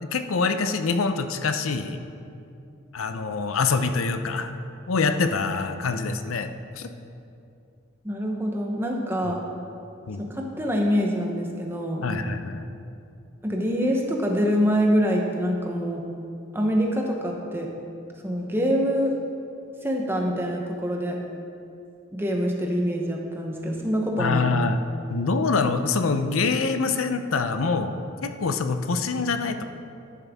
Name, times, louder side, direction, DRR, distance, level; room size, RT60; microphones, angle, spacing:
voice 1, 0.0-2.0 2.9-4.5 4.9-6.9 10.1-10.2 12.0-12.6 24.2-24.8 25.1-27.9 28.2-29.6, left 4 dB, 85° left, 8 dB, 0.6 m, -25 dB
voice 2, 8.0-9.4 10.2-12.0 13.4-16.1 16.5-17.7 18.2-19.2 19.8-21.2 22.1-24.5, equal, 10° right, 0 dB, 0.8 m, -25 dB
11.5 x 7.4 x 3.5 m, 2.6 s
head